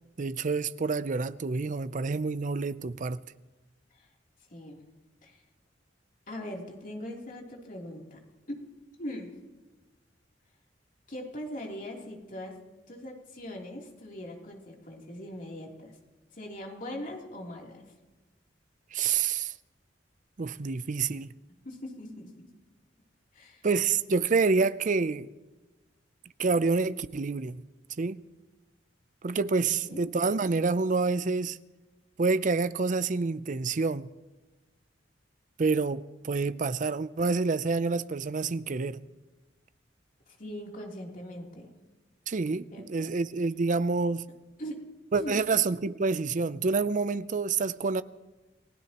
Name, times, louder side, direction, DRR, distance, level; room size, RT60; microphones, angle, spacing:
voice 1, 0.2-3.2 18.9-19.5 20.4-21.3 23.6-25.3 26.4-27.6 28.0-28.2 29.2-31.6 32.2-34.1 35.6-39.0 42.3-44.2 45.1-48.0, right 4 dB, 45° right, 0.5 m, -28 dB
voice 2, 6.3-8.2 8.5-8.6 9.0-9.4 11.1-12.6 12.9-16.0 16.3-17.9 21.6-22.5 23.3-23.6 29.6-30.1 40.3-41.7 42.7-43.2 44.6-44.9 45.1-45.4, left 1 dB, 45° left, 3.2 m, -41 dB
29.5 x 16.5 x 3.0 m
head